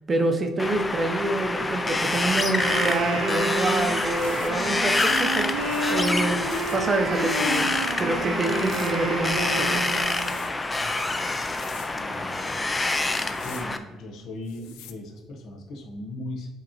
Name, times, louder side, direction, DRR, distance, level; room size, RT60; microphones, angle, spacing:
voice 1, 0.1-5.5 5.9-6.5 6.7-7.7 8.0-9.8, right 2 dB, 30° right, 5 dB, 0.6 m, -27 dB
Wind, 0.6-13.8, left 2 dB, 15° left, 0.4 m, -27 dB
Wind instrument woodwind instrument, 2.5-10.5, right 3 dB, 85° right, 0.8 m, -30 dB
sound 1, 2.9-3.1 3.9-8.0 8.5-9.1 9.8-10.5 11.3-12.0 13.0-13.7 14.5-14.9, left 11 dB, 90° left, 0.3 m, -46 dB
voice 2, 10.8-11.2 12.0-16.5, left 1 dB, 65° left, 0 dB, 0.9 m, -39 dB
5.1 x 2.9 x 2.9 m, 1.3 s
cardioid pair, 100°, 0 cm